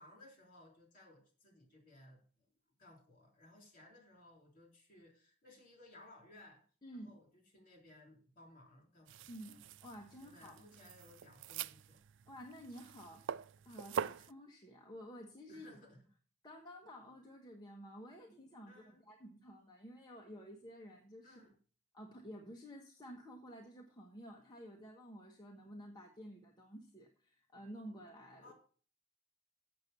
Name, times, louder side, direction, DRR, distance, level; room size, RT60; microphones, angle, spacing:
voice 1, 0.0-2.2 2.8-6.6 6.9-9.6 10.2-12.0 15.5-16.0 18.7-19.0 21.2-21.6 28.4-28.5, left 1 dB, 45° left, 2 dB, 3.5 m, -60 dB
voice 2, 6.8-7.1 9.3-10.6 12.3-15.8 16.4-21.4 21.9-28.5, equal, 20° left, 0 dB, 1.2 m, -52 dB
sound 1, 9.1-14.3, right 8 dB, 60° right, 0.3 m, -44 dB
7.6 x 7.3 x 6.7 m, 0.41 s
head